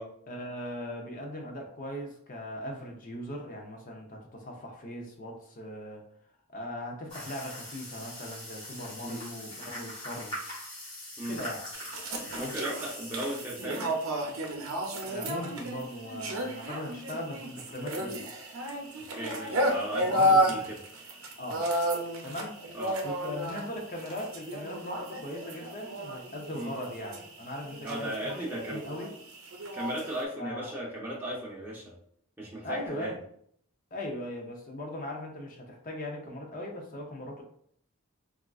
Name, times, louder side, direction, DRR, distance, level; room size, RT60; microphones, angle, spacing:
voice 1, 0.3-6.0 6.5-10.4 11.3-11.6 12.2-12.5 15.1-18.3 20.0-20.7 21.4-21.6 22.2-22.6 23.0-28.4 28.7-29.1 30.4-30.7 32.6-33.2 33.9-37.4, left 1 dB, 35° left, 1 dB, 0.5 m, -39 dB
sound 1, 7.1-13.7, left 1 dB, 20° left, 1.4 m, -42 dB
sound 2, 11.7-30.2, equal, 70° right, 0.6 m, -32 dB
voice 2, 12.4-13.9 19.1-20.8 22.7-23.0 26.5-26.7 27.8-28.8 29.7-31.9 32.4-33.2, right 1 dB, 10° right, -5 dB, 0.6 m, -36 dB
3.5 x 2.4 x 2.3 m, 0.65 s
head